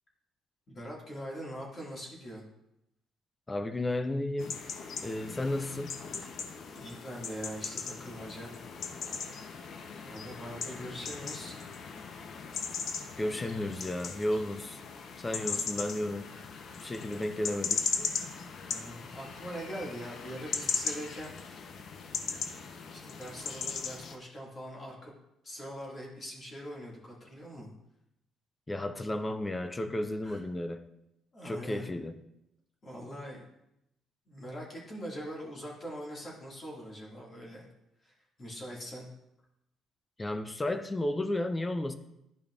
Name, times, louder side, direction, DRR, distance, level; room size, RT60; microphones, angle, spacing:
voice 1, 0.7-2.4 6.7-8.5 10.0-11.6 15.2-15.7 18.6-21.3 22.9-25.1 25.4-27.7 30.2-30.4 31.3-31.9 32.8-33.4 34.3-37.7 38.0-39.1, equal, 35° left, -3 dB, 1.9 m, -42 dB
voice 2, 3.5-4.6 5.0-6.0 13.2-14.8 15.2-16.3 16.8-17.9 28.7-30.8 31.4-32.2 40.2-41.9, left 1 dB, 15° left, 10 dB, 0.5 m, -33 dB
sound 1, 4.4-24.2, left 6 dB, 55° left, 0.6 m, -38 dB
11.0 x 5.1 x 2.4 m, 0.83 s
cardioid pair, 105°, 0 cm